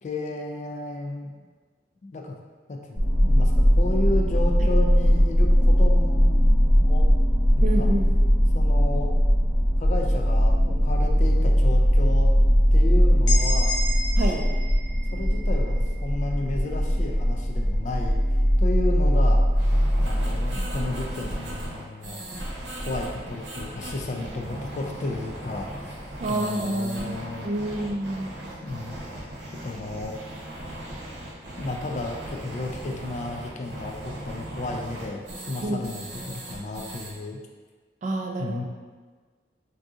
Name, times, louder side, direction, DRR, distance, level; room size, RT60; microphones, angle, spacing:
voice 1, 0.0-1.3 2.0-2.4 2.7-7.1 7.6-7.9 8.5-9.2 9.8-12.3 12.7-13.7 15.1-18.2 18.6-19.4 20.0-22.2 22.8-25.9 26.3-27.5 28.6-29.0 29.6-30.2 31.6-37.4 38.4-38.6, left 2 dB, 40° left, 2 dB, 0.3 m, -33 dB
sound 1, 3.0-21.3, equal, 65° left, 0.9 m, -20 dB
voice 2, 7.6-8.1 14.2-14.4 26.2-27.2 27.4-28.3 35.6-35.8 38.0-38.6, right 1 dB, 45° right, 2 dB, 0.3 m, -28 dB
sound 2, 13.3-17.1, left 2 dB, 90° left, 0.7 m, -33 dB
sound 3, 19.5-37.1, right 1 dB, 85° right, 0.8 m, -37 dB
3.6 x 2.7 x 2.4 m, 1.4 s
head